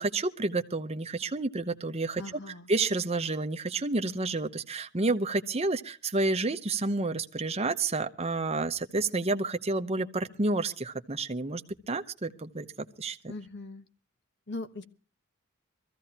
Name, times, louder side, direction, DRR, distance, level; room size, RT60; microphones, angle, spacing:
voice 1, 0.0-2.2 2.7-11.6 11.9-13.3, right 3 dB, 30° right, 8 dB, 0.8 m, -30 dB
voice 2, 2.2-2.7 13.3-13.9 14.5-14.8, left 2 dB, 55° left, 9 dB, 1.2 m, -40 dB
23.5 x 15.0 x 2.9 m, 0.35 s
head